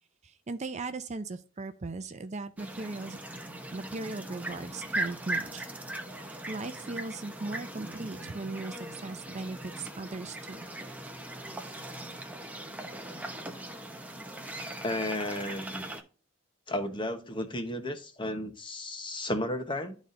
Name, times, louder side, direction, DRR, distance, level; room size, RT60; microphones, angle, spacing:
voice 1, 0.2-3.2 3.7-5.7 6.2-10.7, right 3 dB, 35° right, 0.5 m, -38 dB
sound 1, 2.6-16.0, right 1 dB, 5° right, 0.8 m, -39 dB
voice 2, 14.8-15.8 16.7-20.0, left 1 dB, 25° left, 0.9 m, -33 dB
12.0 x 4.1 x 2.5 m
head